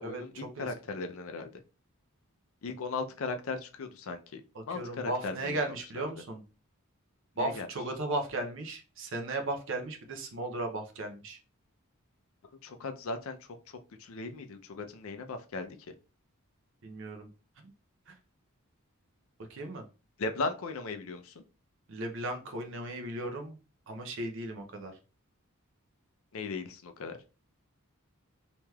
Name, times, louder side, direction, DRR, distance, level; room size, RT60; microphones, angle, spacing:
voice 1, 0.0-1.5 2.6-6.1 7.4-7.7 12.6-15.8 20.2-21.4 26.3-27.2, left 3 dB, 70° left, 7 dB, 0.5 m, -37 dB
voice 2, 4.7-6.4 7.4-11.4 16.8-17.3 18.1-18.2 19.5-19.8 21.9-23.6 23.9-24.9, right 2 dB, 55° right, 4 dB, 0.5 m, -36 dB
3.2 x 2.9 x 2.3 m, 0.33 s
head